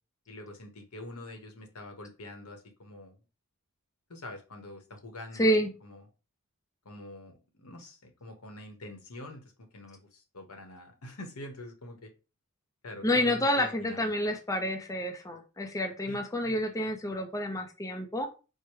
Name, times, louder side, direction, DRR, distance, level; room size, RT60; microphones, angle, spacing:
voice 1, 0.3-3.2 4.1-5.5 5.8-6.1 6.8-12.1 12.8-14.1 16.0-16.6, left 1 dB, 85° left, 5 dB, 1.0 m, -45 dB
voice 2, 5.4-5.7 13.0-18.3, equal, 15° left, 4 dB, 0.5 m, -29 dB
4.7 x 2.1 x 4.5 m, 0.32 s
head